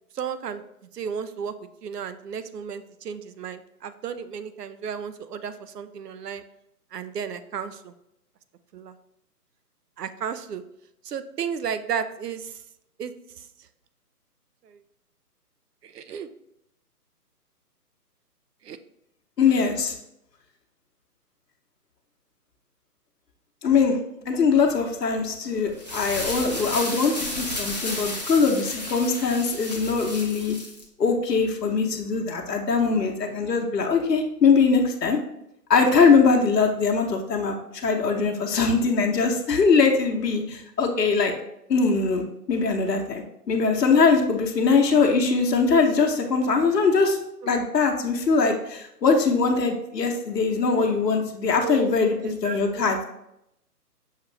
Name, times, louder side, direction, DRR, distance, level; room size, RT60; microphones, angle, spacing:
voice 1, 0.1-0.6 0.9-1.5 1.8-6.4 6.9-7.9 8.7-8.9 10.0-10.6 11.0-12.6 13.0-13.4 14.6-14.8 15.8-16.3 18.6-18.8 47.4-47.5 51.6-51.8 52.2-52.9, right 7 dB, 75° right, 11 dB, 0.6 m, -33 dB
voice 2, 19.4-19.9 23.6-24.0 24.3-30.5 31.0-35.2 35.7-37.6 37.8-41.3 41.7-47.2 47.5-53.0, left 4 dB, 80° left, 2 dB, 0.9 m, -22 dB
sound 1, 25.6-30.8, left 1 dB, 30° left, 0.4 m, -33 dB
6.4 x 2.5 x 3.1 m, 0.81 s
figure-of-eight pair, 150°, 48 cm